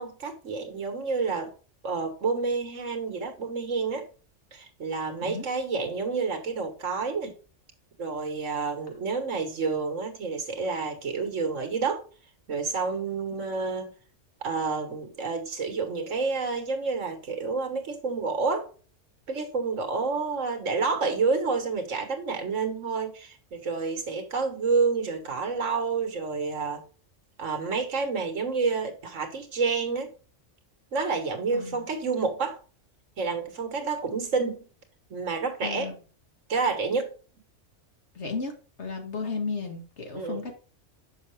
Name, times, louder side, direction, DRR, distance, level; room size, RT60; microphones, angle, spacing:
voice 1, 0.0-1.5 1.8-4.1 4.5-7.4 8.0-12.0 12.5-13.9 14.4-18.7 19.3-26.8 27.4-30.1 30.9-32.6 33.2-34.7 35.1-35.9 36.5-37.1 40.1-40.4, right 4 dB, 80° right, 1.7 m, -29 dB
voice 2, 35.6-35.9 38.1-38.5 38.8-40.5, left 4 dB, 60° left, 1.9 m, -34 dB
6.6 x 5.7 x 3.2 m
omnidirectional pair, 1.3 m